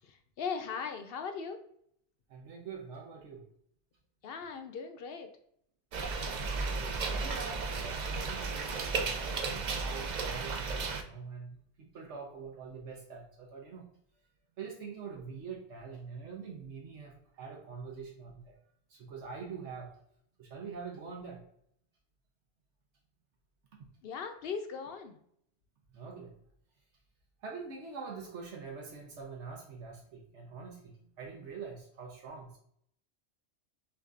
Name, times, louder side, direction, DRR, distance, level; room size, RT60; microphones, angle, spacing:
voice 1, 0.0-1.6 4.2-5.3 24.0-25.2, left 6 dB, 65° left, 7 dB, 0.7 m, -39 dB
voice 2, 2.3-3.4 6.7-13.9 14.6-18.6 18.9-19.9 20.4-21.4 25.9-26.3 27.4-32.6, right 5 dB, 80° right, 0 dB, 1.1 m, -45 dB
sound 1, 5.9-11.0, right 4 dB, 55° right, 0.5 m, -34 dB
5.8 x 2.7 x 2.4 m, 0.69 s
omnidirectional pair, 1.2 m